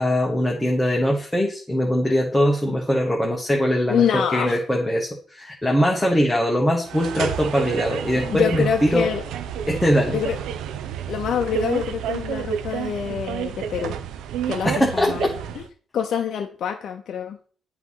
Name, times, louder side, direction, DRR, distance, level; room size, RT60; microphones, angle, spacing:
voice 1, 0.0-9.1 9.7-10.2 14.6-15.2, equal, 10° left, -2 dB, 1.3 m, -21 dB
voice 2, 3.9-4.6 8.1-9.2 10.1-10.4 11.1-14.0 14.5-15.3 15.5-15.6 15.9-17.4, left 8 dB, 65° left, 3 dB, 0.7 m, -26 dB
sound 1, 6.8-15.7, right 9 dB, 85° right, 0.5 m, -30 dB
8.1 x 3.1 x 5.6 m, 0.42 s
cardioid pair, 90°, 0 cm